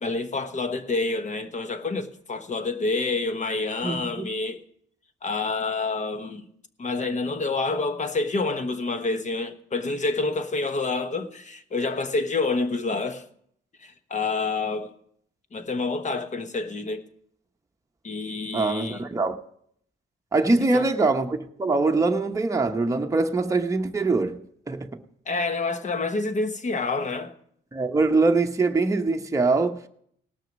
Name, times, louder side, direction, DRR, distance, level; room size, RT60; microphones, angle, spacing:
voice 1, 0.0-4.6 5.2-6.5 6.8-13.2 13.8-14.9 15.5-17.0 18.0-19.1 20.7-20.9 25.3-27.3, left 3 dB, 35° left, 1.2 m, -28 dB
voice 2, 3.8-4.2 18.5-19.4 20.3-25.0 27.7-29.9, right 3 dB, 15° right, 0.9 m, -23 dB
19.0 x 6.4 x 5.3 m
cardioid pair, 90°, 20 cm